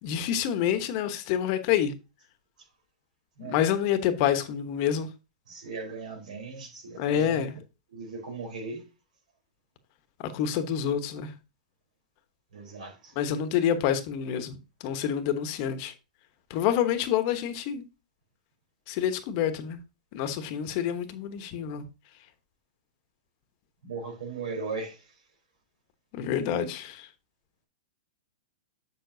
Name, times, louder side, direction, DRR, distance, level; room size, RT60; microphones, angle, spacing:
voice 1, 0.0-1.9 3.4-5.1 7.0-7.5 10.2-11.3 13.2-14.6 14.8-15.9 16.5-17.8 18.9-19.8 20.1-21.8 26.1-27.1, left 9 dB, 45° left, 1.1 m, -27 dB
voice 2, 5.5-7.5 7.9-8.8 12.5-13.2 23.8-25.1, right 4 dB, 75° right, 3.9 m, -38 dB
7.2 x 6.8 x 2.7 m
hypercardioid pair, 135°, 4 cm